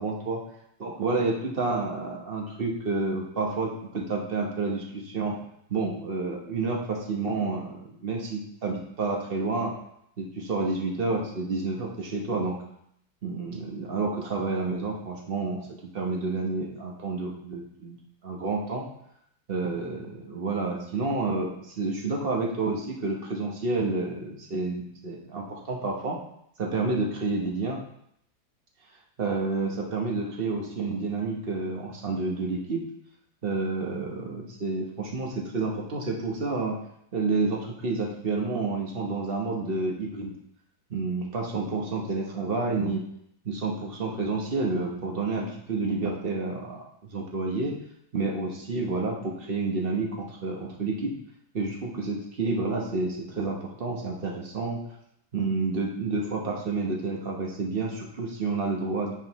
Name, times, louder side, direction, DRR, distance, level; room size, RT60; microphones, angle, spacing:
voice 1, 0.0-0.4 0.8-5.3 5.7-9.7 10.2-12.6 13.2-15.6 15.9-18.0 18.2-18.8 19.5-26.2 26.6-27.8 29.2-32.8 33.4-36.8 37.1-40.3 40.9-43.1 43.4-47.7 48.1-51.1 51.5-54.8 55.3-59.1, right 3 dB, 40° right, 0 dB, 0.9 m, -29 dB
9.0 x 4.9 x 3.0 m, 0.72 s
omnidirectional pair, 2.1 m